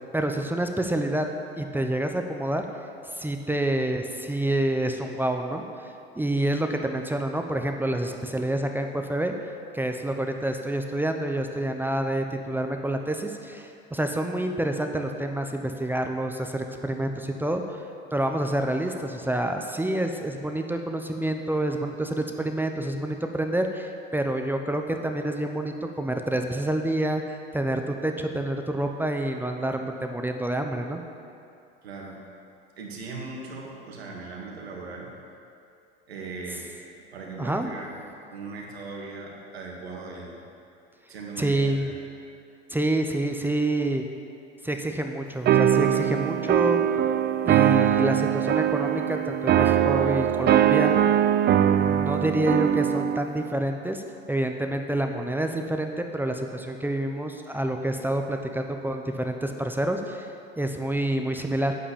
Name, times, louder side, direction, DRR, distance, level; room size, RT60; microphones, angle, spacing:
voice 1, 0.1-1.3 1.6-2.7 3.1-5.6 6.2-9.3 9.7-17.8 18.1-31.0 37.4-37.7 41.4-41.9 42.7-44.0 44.6-46.8 47.4-50.9 51.7-54.0 54.3-60.3 60.6-61.7, right 1 dB, 5° right, 4 dB, 0.8 m, -28 dB
voice 2, 31.8-32.2 32.8-35.1 36.1-36.7 37.1-38.0 38.3-40.3 41.1-42.0, right 3 dB, 90° right, -2 dB, 2.3 m, -39 dB
sound 1, 45.5-53.3, right 10 dB, 35° right, 0.5 m, -21 dB
8.9 x 8.6 x 7.1 m, 2.5 s
hypercardioid pair, 80°, 30 cm